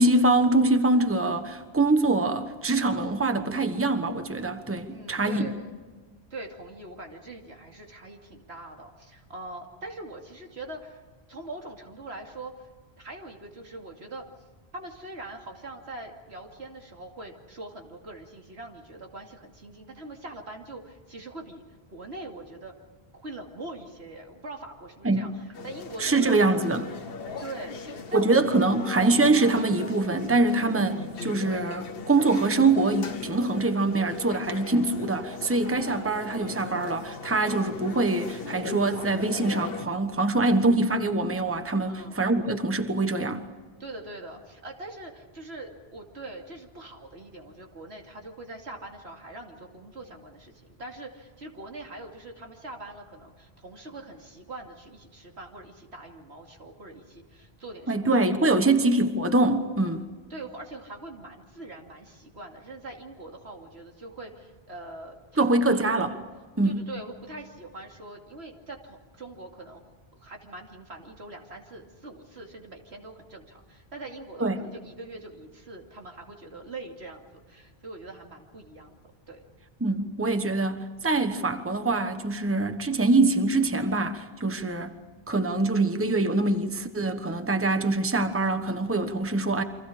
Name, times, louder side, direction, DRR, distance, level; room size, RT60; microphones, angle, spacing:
voice 1, 0.0-5.4 25.0-25.3 26.0-26.9 28.1-43.5 57.9-60.0 65.4-66.1 66.6-66.8 74.4-74.6 79.8-84.9 85.3-89.6, right 2 dB, 15° right, 1.2 m, -24 dB
voice 2, 4.9-5.7 6.3-11.0 11.3-12.7 13.0-14.3 14.7-21.6 21.9-22.7 23.1-25.3 25.6-26.4 27.4-28.5 41.9-42.2 43.8-58.6 60.3-65.8 66.6-69.8 70.1-78.9 79.3-79.4 84.5-84.7, right 2 dB, 90° right, 2.9 m, -42 dB
sound 1, 25.5-39.8, left 4 dB, 65° left, 1.3 m, -38 dB
29.5 x 24.5 x 5.0 m
omnidirectional pair, 1.1 m